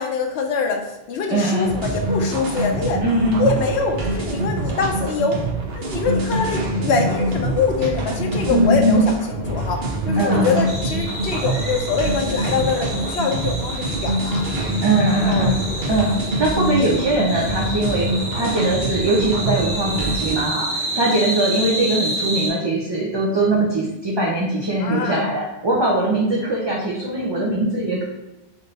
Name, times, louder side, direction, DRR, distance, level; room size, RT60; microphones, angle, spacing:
voice 1, 0.0-3.0 3.4-5.4 5.7-14.5 15.2-15.9 24.8-25.3, left 5 dB, 90° left, 3 dB, 0.9 m, -24 dB
voice 2, 1.3-1.7 3.0-3.5 8.5-9.1 10.2-10.6 14.8-15.5 15.9-16.1 16.4-18.1 18.3-28.0, right 2 dB, 30° right, -4 dB, 0.5 m, -21 dB
sound 1, 1.6-20.4, right 1 dB, 65° right, 1.0 m, -25 dB
sound 2, 10.7-22.5, right 1 dB, 40° left, 1.7 m, -29 dB
3.5 x 2.7 x 4.0 m, 0.98 s
omnidirectional pair, 1.1 m